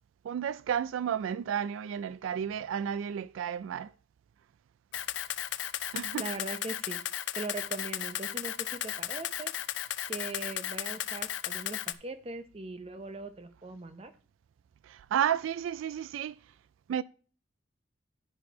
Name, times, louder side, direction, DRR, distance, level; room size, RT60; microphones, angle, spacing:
voice 1, 0.2-3.9 5.9-6.3 14.8-16.4 16.9-17.0, right 9 dB, 85° right, 0.3 m, -32 dB
Camera, 4.9-11.9, left 12 dB, 70° left, 0.4 m, -35 dB
voice 2, 6.2-9.5 10.1-14.1, right 3 dB, 30° right, 0.7 m, -40 dB
10.0 x 4.3 x 5.1 m
head